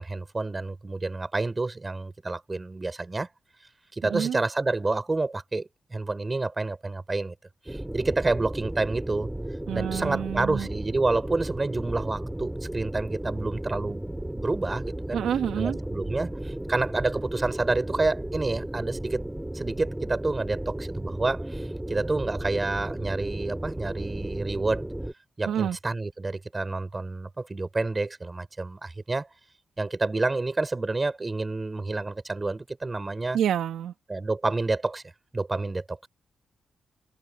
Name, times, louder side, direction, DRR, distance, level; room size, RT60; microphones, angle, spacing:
voice 1, 0.0-3.3 3.9-7.3 7.7-9.3 9.7-14.0 14.3-15.2 15.6-19.2 19.5-24.9 25.4-29.3 29.8-33.4 34.1-35.0 35.3-36.1, right 3 dB, 30° right, 5.3 m, -29 dB
voice 2, 4.0-4.4 9.7-10.7 15.1-15.8 25.5-25.8 33.3-33.9, right 9 dB, 85° right, 2.0 m, -28 dB
sound 1, 7.7-25.1, right 1 dB, 10° right, 5.2 m, -34 dB
cardioid pair, 70°, 0 cm